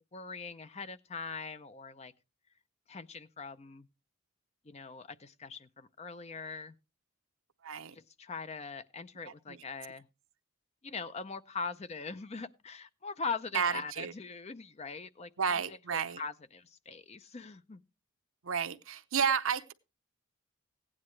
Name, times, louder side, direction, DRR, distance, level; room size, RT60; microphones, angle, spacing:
voice 1, 0.1-2.1 2.9-3.9 4.6-6.8 7.9-10.1 10.8-15.3 15.6-17.8, left 4 dB, 30° left, 0.5 m, -42 dB
voice 2, 7.6-7.9 9.3-9.6 13.5-14.1 15.4-16.2 18.4-19.7, right 6 dB, 70° right, 0.7 m, -31 dB
16.0 x 9.6 x 3.2 m
head